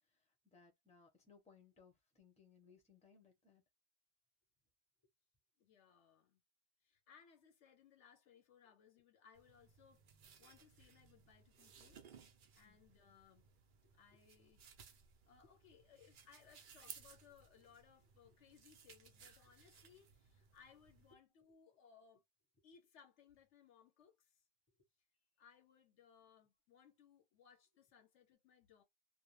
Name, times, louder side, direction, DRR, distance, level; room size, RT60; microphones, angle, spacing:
voice 1, 0.4-3.6 12.6-12.8, left 5 dB, 5° left, 0.7 m, -66 dB
voice 2, 5.6-6.4 6.8-12.0 12.5-13.5 13.9-14.6 15.3-22.2 22.6-24.5 25.4-28.8, left 7 dB, 70° left, 0.9 m, -66 dB
sound 1, 9.4-21.1, right 6 dB, 55° right, 0.6 m, -61 dB
2.4 x 2.2 x 3.1 m
omnidirectional pair, 1.3 m